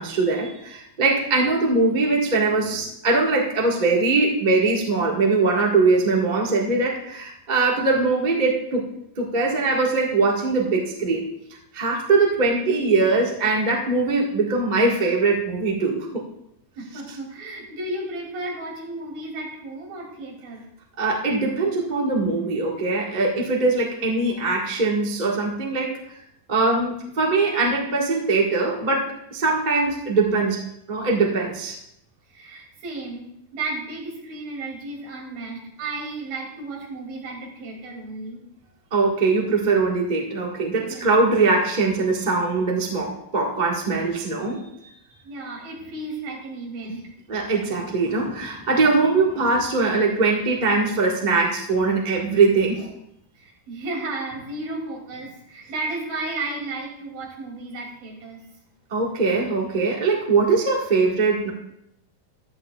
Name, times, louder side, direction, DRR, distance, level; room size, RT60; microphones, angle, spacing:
voice 1, 0.0-8.9 9.2-11.3 11.7-16.2 21.0-26.0 26.5-31.8 38.9-44.9 47.3-52.9 58.9-61.5, right 3 dB, 40° right, -2 dB, 0.6 m, -21 dB
voice 2, 16.8-20.6 32.3-38.4 40.8-41.1 45.2-47.1 53.4-58.4, right 2 dB, 75° right, -1 dB, 4.6 m, -33 dB
16.0 x 11.5 x 2.4 m, 0.77 s
omnidirectional pair, 4.1 m